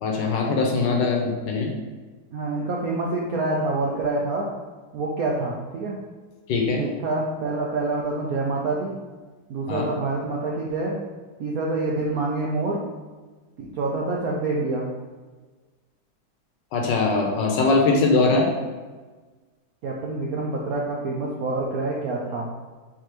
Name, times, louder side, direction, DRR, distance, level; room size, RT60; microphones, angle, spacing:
voice 1, 0.0-1.7 6.5-6.8 9.7-9.9 16.7-18.5, left 3 dB, 70° left, 0 dB, 1.3 m, -21 dB
voice 2, 2.3-4.5 4.9-6.0 6.7-8.9 9.5-11.0 11.4-12.8 13.6-14.9 19.8-22.5, right 2 dB, 75° right, -3 dB, 0.8 m, -26 dB
4.7 x 3.5 x 2.9 m, 1.3 s
omnidirectional pair, 2.2 m